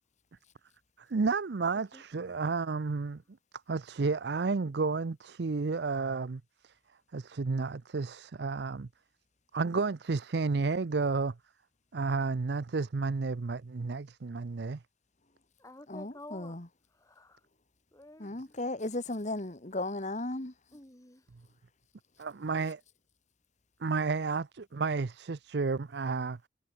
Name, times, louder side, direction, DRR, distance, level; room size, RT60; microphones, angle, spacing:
voice 1, 1.1-3.2 3.7-6.7 7.1-8.9 9.5-11.3 11.9-14.8 22.2-22.8 23.8-26.4, right 4 dB, 65° right, 0.6 m, -31 dB
voice 2, 1.7-2.3 15.6-16.6 16.9-17.4 17.9-18.6 20.7-21.2, left 1 dB, 20° left, 3.0 m, -51 dB
voice 3, 15.9-16.6 18.2-20.5, left 2 dB, 40° left, 1.9 m, -35 dB
head